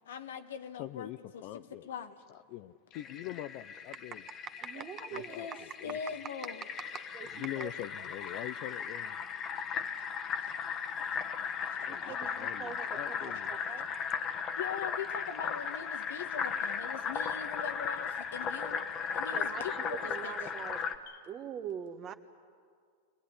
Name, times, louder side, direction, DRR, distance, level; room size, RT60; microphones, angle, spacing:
voice 1, 0.0-1.5 1.8-2.2 4.8-4.9 5.1-5.6 5.8-6.6 9.9-10.0 10.3-10.5 10.8-11.2 11.6-12.3 13.2-13.7 14.5-18.8 19.1-20.0 20.2-20.3 21.1-21.2, left 7 dB, 90° left, 1.5 m, -42 dB
voice 2, 0.8-1.9 2.5-4.2 5.1-5.5 5.8-6.0 7.4-9.2 11.9-13.5, left 14 dB, 55° left, 0.5 m, -43 dB
Fill (with liquid), 2.9-21.0, left 6 dB, 30° left, 1.4 m, -37 dB
voice 3, 4.6-5.9 7.1-7.7 11.9-13.9 19.3-20.8 21.3-22.1, right 8 dB, 35° right, 1.5 m, -43 dB
23.5 x 18.5 x 9.9 m
supercardioid pair, 130°, 0 cm